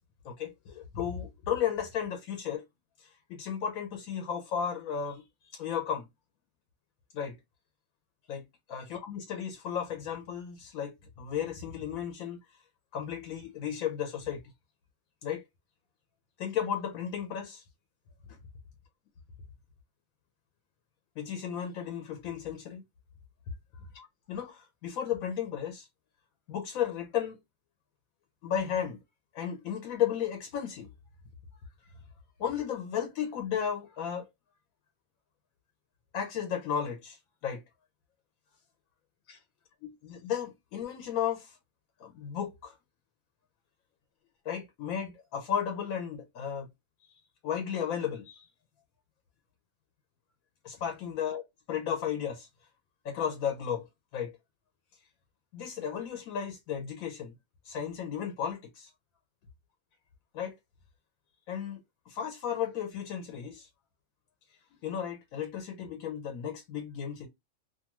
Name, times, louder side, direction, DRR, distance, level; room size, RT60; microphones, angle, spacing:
voice 1, 0.2-2.6 3.0-6.1 7.1-7.4 8.3-8.4 8.7-12.4 12.9-14.4 15.2-15.4 16.4-17.6 21.2-22.8 23.9-25.9 26.5-27.4 28.4-29.0 29.3-30.9 32.4-34.3 36.1-37.6 39.3-39.4 39.8-41.6 42.0-42.7 44.4-46.7 47.0-48.5 50.6-51.4 51.7-52.5 53.0-53.9 54.1-54.4 55.5-57.3 57.6-58.9 60.3-60.5 61.5-61.8 62.1-63.7 64.8-67.3, left 8 dB, 90° left, 1.1 m, -34 dB
2.6 x 2.3 x 2.8 m
omnidirectional pair, 1.4 m